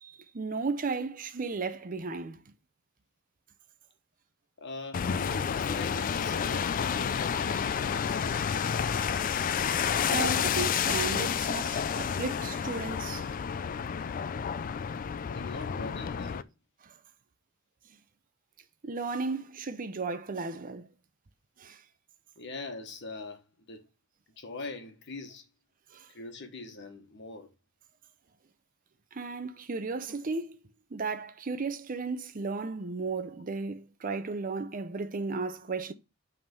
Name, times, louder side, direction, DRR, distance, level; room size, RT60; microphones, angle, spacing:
voice 1, 0.0-2.4 10.1-13.2 16.9-17.0 18.8-20.9 21.6-21.8 25.9-26.1 29.1-30.6 30.9-35.9, right 4 dB, 40° right, 0.6 m, -34 dB
voice 2, 4.6-8.4 15.3-16.5 22.4-23.8 24.4-25.5 26.1-27.5, left 3 dB, 60° left, 1.3 m, -42 dB
sound 1, 4.9-16.4, left 7 dB, 40° left, 0.3 m, -30 dB
5.7 x 3.6 x 5.2 m
head